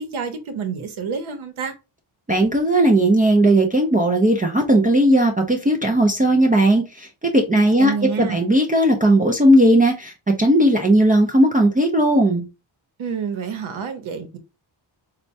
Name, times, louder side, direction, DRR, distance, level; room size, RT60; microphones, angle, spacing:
voice 1, 0.0-1.7 7.8-8.4 13.0-14.4, right 6 dB, 85° right, 0.8 m, -28 dB
voice 2, 2.3-7.9 8.2-10.1 10.4-12.4, right 1 dB, 20° right, 0.4 m, -17 dB
4.2 x 2.2 x 2.6 m
wide cardioid pair, 145°, 48 cm